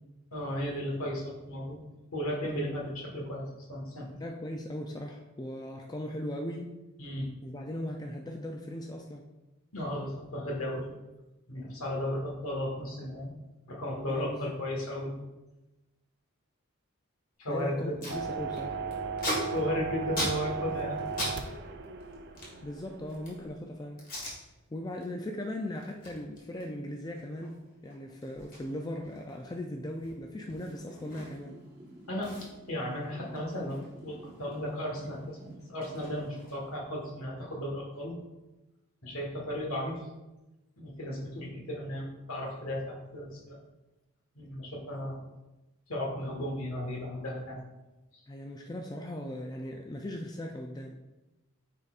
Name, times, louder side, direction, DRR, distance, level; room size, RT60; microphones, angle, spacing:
voice 1, 0.3-1.8 2.1-4.2 7.0-7.3 9.7-10.9 11.5-13.3 13.7-15.1 17.4-17.9 19.5-21.0 32.1-32.3 32.7-38.1 39.0-40.0 40.8-43.6 44.3-45.2 45.9-47.6, left 1 dB, 75° left, -1 dB, 1.5 m, -35 dB
voice 2, 4.2-6.7 7.4-9.3 14.1-14.6 17.5-18.8 22.6-24.0 24.7-31.6 48.3-50.9, left 1 dB, 15° left, 2 dB, 0.3 m, -38 dB
Packing tape duct tape, 17.5-17.6 17.7-18.2 18.5-21.4 21.6-23.5 24.0-24.4 24.8-25.1 25.4-31.6 31.9-32.0 32.2-34.6 34.9-36.8, equal, 40° left, 1.8 m, -40 dB
sound 1, 18.1-23.5, right 5 dB, 50° right, 0.5 m, -36 dB
sound 2, 30.5-35.5, right 1 dB, 20° right, 1.2 m, -51 dB
9.8 x 4.1 x 2.4 m, 1.0 s
head